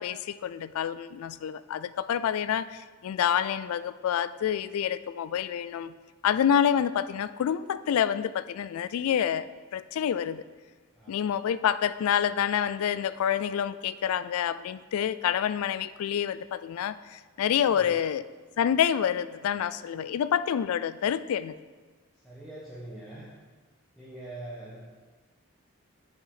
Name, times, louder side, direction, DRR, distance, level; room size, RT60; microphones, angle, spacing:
voice 1, 0.0-5.9 6.2-9.5 9.7-10.4 11.1-18.2 18.6-21.6, left 9 dB, 80° left, 16 dB, 0.3 m, -27 dB
voice 2, 22.2-23.3 24.0-24.9, right 1 dB, ahead, -9 dB, 1.1 m, -43 dB
6.8 x 5.8 x 5.6 m, 1.4 s
head